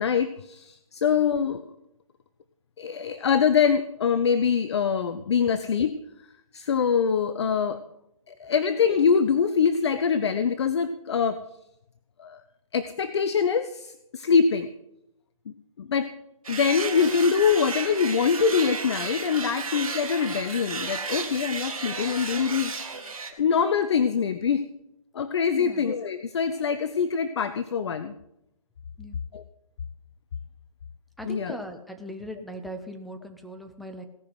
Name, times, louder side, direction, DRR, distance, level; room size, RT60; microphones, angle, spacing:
voice 1, 0.0-1.6 2.8-6.0 6.5-7.8 8.3-11.4 12.2-12.4 12.7-14.7 15.8-16.1 16.5-22.7 23.4-24.6 25.1-28.1 29.3-29.4 31.2-31.6, left 6 dB, 50° left, 12 dB, 0.7 m, -24 dB
sound 1, 16.4-23.3, right 4 dB, 70° right, 3.1 m, -33 dB
voice 2, 25.5-25.9 29.0-29.2 31.2-34.0, equal, ahead, 6 dB, 0.6 m, -39 dB
18.0 x 5.9 x 7.9 m, 0.83 s
figure-of-eight pair, 150°, 18 cm